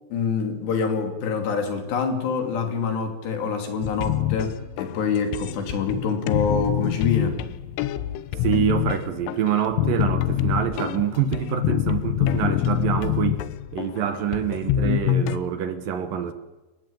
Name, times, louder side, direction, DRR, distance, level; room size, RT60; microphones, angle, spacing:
voice 1, 0.1-7.4, left 5 dB, 65° left, 6 dB, 4.7 m, -26 dB
sound 1, 3.8-15.4, left 12 dB, 85° left, 3.5 m, -26 dB
voice 2, 8.4-13.4 13.7-16.3, right 9 dB, 65° right, 10 dB, 2.3 m, -26 dB
28.0 x 15.5 x 8.8 m, 1.1 s
omnidirectional pair, 5.5 m